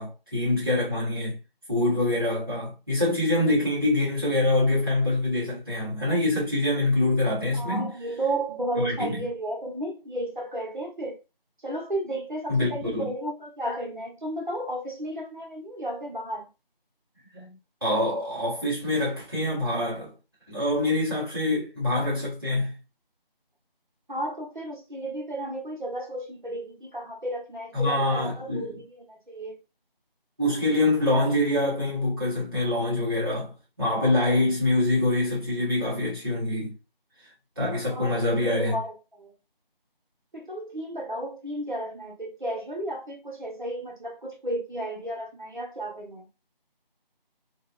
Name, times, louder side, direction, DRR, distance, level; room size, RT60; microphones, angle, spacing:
voice 1, 0.0-1.4 1.7-7.9 8.8-9.2 12.5-13.1 17.3-20.1 20.5-22.8 27.7-28.7 30.4-36.8 37.6-38.8, left 2 dB, 25° right, 0.8 m, -25 dB
voice 2, 7.5-11.2 11.6-16.5 24.1-29.5 37.8-39.3 40.3-46.3, right 1 dB, 55° right, 0.8 m, -33 dB
2.8 x 2.1 x 2.2 m
figure-of-eight pair, 170°, 29 cm